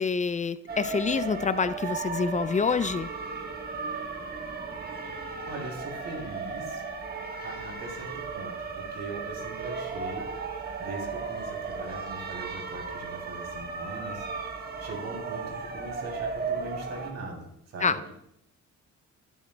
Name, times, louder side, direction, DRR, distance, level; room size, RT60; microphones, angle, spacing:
voice 1, 0.0-3.1 17.8-18.0, left 5 dB, 25° left, 13 dB, 0.4 m, -27 dB
sound 1, 0.7-17.1, right 4 dB, 30° right, 1.4 m, -35 dB
voice 2, 5.5-6.8 7.4-10.3 10.8-14.3 14.8-18.1, right 2 dB, 60° right, 1 dB, 3.0 m, -40 dB
17.0 x 7.3 x 2.3 m, 0.76 s
cardioid pair, 90°, 30 cm